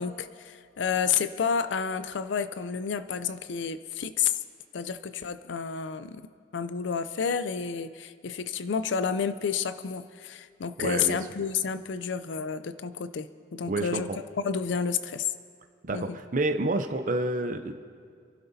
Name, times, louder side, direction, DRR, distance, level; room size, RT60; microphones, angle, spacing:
voice 1, 0.0-4.4 4.7-6.2 6.5-14.1 14.4-15.3 15.9-16.0, left 6 dB, 70° left, 13 dB, 0.4 m, -30 dB
voice 2, 10.8-11.2 13.6-14.0 15.8-17.7, right 2 dB, 45° right, 7 dB, 0.6 m, -28 dB
27.5 x 12.0 x 2.7 m, 2.2 s
head